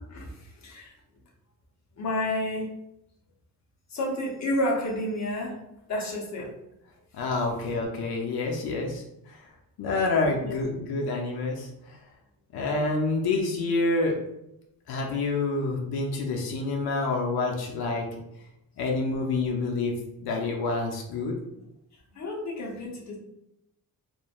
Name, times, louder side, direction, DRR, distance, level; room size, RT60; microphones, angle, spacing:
voice 1, 0.1-0.9 2.0-2.7 3.9-5.6 5.9-6.5 10.4-10.5 22.2-23.2, left 1 dB, 45° left, -2 dB, 0.8 m, -30 dB
voice 2, 7.1-9.5 9.8-12.0 12.5-14.2 14.9-18.2 18.8-19.9 20.2-21.4, left 3 dB, 80° left, 0 dB, 0.6 m, -28 dB
3.1 x 2.5 x 2.3 m, 0.84 s
wide cardioid pair, 160°, 37 cm